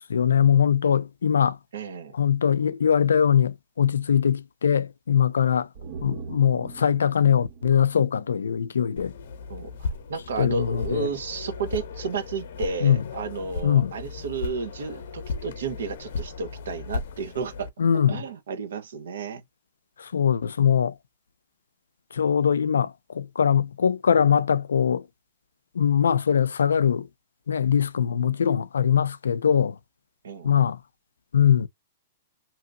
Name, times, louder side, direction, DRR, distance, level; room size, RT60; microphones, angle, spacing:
voice 1, 0.1-1.6 2.1-5.7 6.0-9.1 10.4-11.1 12.8-13.0 13.6-13.9 17.8-18.2 20.0-20.9 22.1-25.0 25.8-27.1 27.5-29.8 30.4-30.8 31.3-31.7, left 8 dB, 90° left, 0.3 m, -22 dB
voice 2, 1.7-2.1 9.5-17.7 18.1-19.4 30.2-30.5, right 5 dB, 80° right, 0.9 m, -32 dB
sound 1, 5.7-9.1 9.4-9.5, right 5 dB, 50° right, 0.7 m, -42 dB
sound 2, 9.0-17.7, left 4 dB, 70° left, 0.8 m, -36 dB
2.9 x 2.7 x 2.5 m
hypercardioid pair, 130°, 0 cm